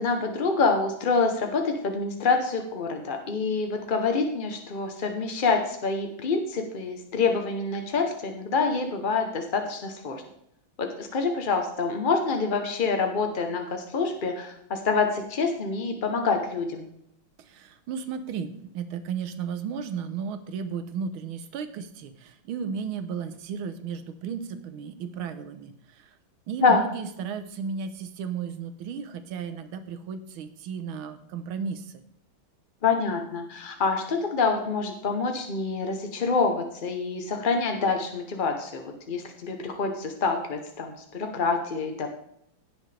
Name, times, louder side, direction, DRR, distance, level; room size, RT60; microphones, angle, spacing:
voice 1, 0.0-10.2 10.8-16.9 26.6-26.8 32.8-42.1, left 4 dB, 50° left, 4 dB, 0.6 m, -26 dB
voice 2, 17.5-25.7 26.5-31.9, right 6 dB, 90° right, 10 dB, 1.7 m, -34 dB
16.5 x 6.3 x 3.3 m, 0.74 s
omnidirectional pair, 2.2 m